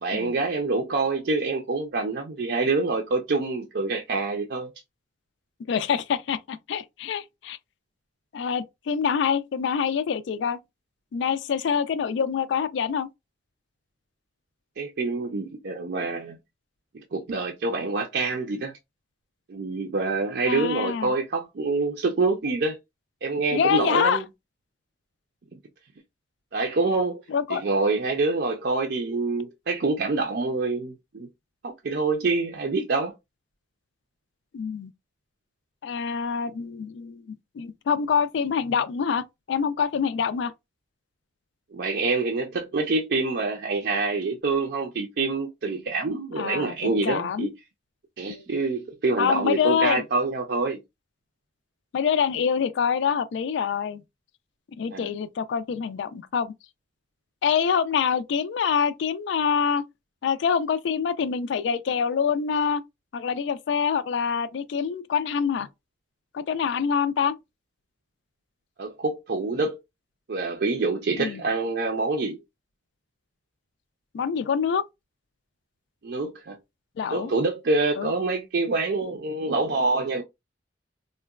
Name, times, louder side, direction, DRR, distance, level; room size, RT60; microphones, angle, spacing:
voice 1, 0.0-4.7 14.8-16.4 17.1-18.7 19.5-22.8 23.2-24.2 26.5-27.2 27.5-31.3 31.6-33.1 41.7-47.5 48.2-50.8 54.9-55.1 68.8-69.8 70.3-72.4 76.0-76.6 77.1-80.2, right 3 dB, 60° right, 0.5 m, -26 dB
voice 2, 5.7-7.6 8.3-10.6 11.1-13.1 20.5-21.1 23.5-24.2 27.3-27.6 34.5-34.9 35.8-40.5 46.4-47.5 48.3-48.6 49.2-50.0 51.9-54.0 54.8-56.5 57.4-59.8 60.2-62.8 63.1-65.7 66.3-67.3 71.2-71.4 74.1-74.8 77.0-77.3 78.0-78.1, left 7 dB, 75° left, 0.3 m, -26 dB
3.7 x 2.1 x 2.3 m
head